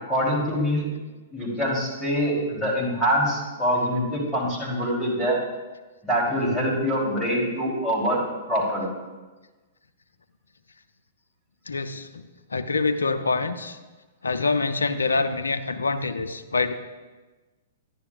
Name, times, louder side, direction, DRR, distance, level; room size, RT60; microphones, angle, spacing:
voice 1, 0.1-0.9 1.3-5.4 6.0-8.2 8.5-9.0, equal, 10° left, -5 dB, 3.2 m, -24 dB
voice 2, 11.7-12.3 12.5-13.8 14.2-16.7, left 3 dB, 80° left, 9 dB, 0.5 m, -25 dB
10.5 x 10.0 x 2.4 m, 1.2 s
figure-of-eight pair, 110°, 0 cm